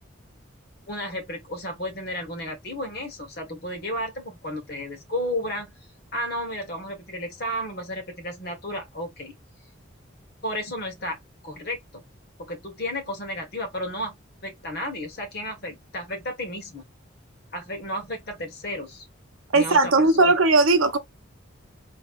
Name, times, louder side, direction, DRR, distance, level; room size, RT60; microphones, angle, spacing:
voice 1, 0.9-5.7 6.1-9.3 10.4-11.2 11.4-12.1 12.5-14.2 14.4-16.8 17.5-19.1 19.5-20.4, left 1 dB, 50° left, 1.4 m, -33 dB
voice 2, 19.5-21.0, right 3 dB, 90° right, 0.8 m, -18 dB
4.1 x 2.9 x 2.5 m
head